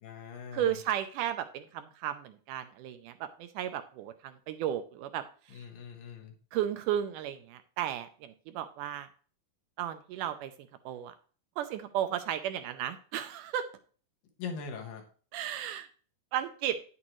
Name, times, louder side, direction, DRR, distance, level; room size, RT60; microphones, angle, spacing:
voice 1, 0.0-0.8 5.5-6.3 14.4-15.0, left 5 dB, 85° left, 3 dB, 3.2 m, -41 dB
voice 2, 0.5-5.6 6.5-9.1 9.8-10.5 10.9-11.1 11.6-13.7 15.3-15.9 16.3-16.8, right 10 dB, 80° right, 9 dB, 2.0 m, -34 dB
9.9 x 8.5 x 3.1 m, 0.42 s
omnidirectional pair, 3.9 m